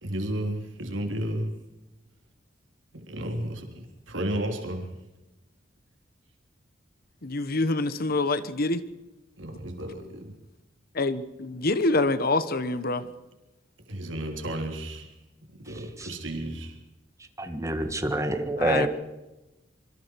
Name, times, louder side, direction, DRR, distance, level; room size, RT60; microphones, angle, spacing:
voice 1, 0.0-1.6 2.9-4.9 9.4-10.3 13.9-15.1 15.6-16.8, right 1 dB, 85° right, 3 dB, 3.5 m, -33 dB
voice 2, 7.2-8.8 10.9-13.0 18.6-18.9, left 2 dB, 55° left, 13 dB, 1.2 m, -26 dB
voice 3, 17.4-18.9, right 1 dB, 15° right, 7 dB, 1.9 m, -27 dB
26.0 x 24.5 x 4.8 m, 1.0 s
head